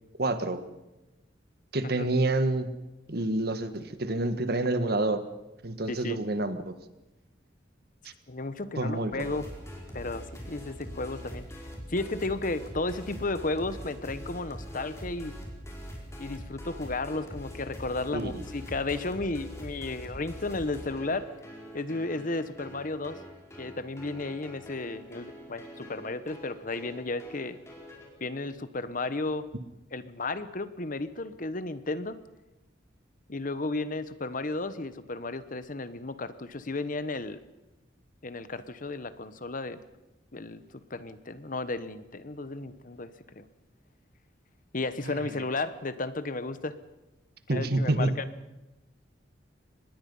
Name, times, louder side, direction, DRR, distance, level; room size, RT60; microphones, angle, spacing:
voice 1, 0.2-0.6 1.7-2.7 3.1-5.2 5.6-6.7 8.8-9.3 18.1-18.3 45.0-45.1 47.5-48.1, right 2 dB, 55° right, 10 dB, 1.6 m, -28 dB
voice 2, 5.9-6.2 8.3-9.5 9.9-15.3 16.2-21.3 21.7-23.2 23.6-27.6 28.2-29.5 29.9-32.2 33.3-37.4 38.2-39.8 40.3-43.4 44.7-46.8 47.5-48.2, left 2 dB, 45° left, 13 dB, 1.1 m, -33 dB
sound 1, 9.1-28.1, equal, 15° left, 4.9 m, -43 dB
24.5 x 20.5 x 5.5 m, 0.98 s
head